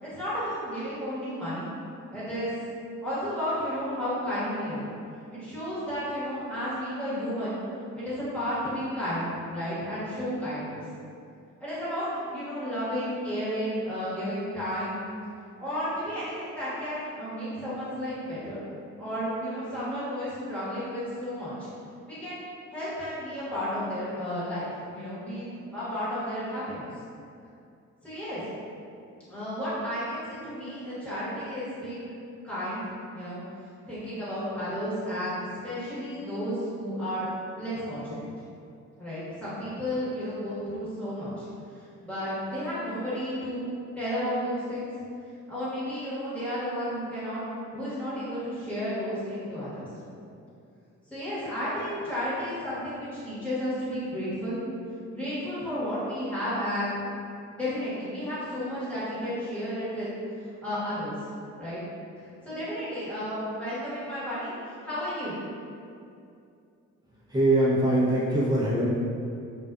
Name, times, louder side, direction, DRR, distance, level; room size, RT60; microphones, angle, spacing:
voice 1, 0.0-1.7 2.1-2.5 3.0-4.9 5.3-7.6 7.9-10.8 11.6-15.0 15.6-18.6 19.0-21.6 22.1-24.7 24.9-26.8 28.0-28.4 29.3-32.1 32.4-32.8 33.1-33.4 33.9-35.4 35.6-37.3 37.6-38.3 39.0-41.5 42.0-43.7 44.0-44.9 45.5-47.4 47.7-49.9 51.1-54.6 55.1-57.0 57.5-60.1 60.6-61.2 61.6-61.8 62.4-65.4, equal, 5° left, -12 dB, 1.1 m, -32 dB
voice 2, 67.3-68.9, right 1 dB, 15° right, -7 dB, 0.7 m, -22 dB
2.4 x 2.4 x 2.3 m, 2.5 s
cardioid pair, 90°, 30 cm